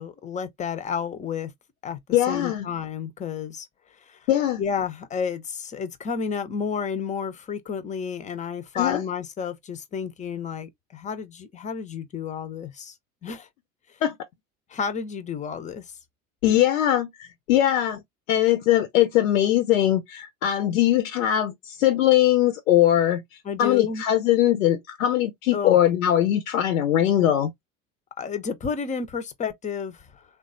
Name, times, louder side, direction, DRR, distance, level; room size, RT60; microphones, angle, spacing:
voice 1, 0.0-1.5 1.8-2.0 2.3-3.7 4.0-4.3 4.6-12.9 13.2-13.5 14.7-15.9 23.5-24.0 25.5-25.8 28.2-30.2, left 6 dB, 20° left, 0.4 m, -31 dB
voice 2, 2.1-2.7 4.3-4.6 8.7-9.0 14.0-14.2 16.4-18.0 18.3-27.5, left 12 dB, 70° left, 0.6 m, -21 dB
3.3 x 2.2 x 2.4 m
figure-of-eight pair, 65°, 43 cm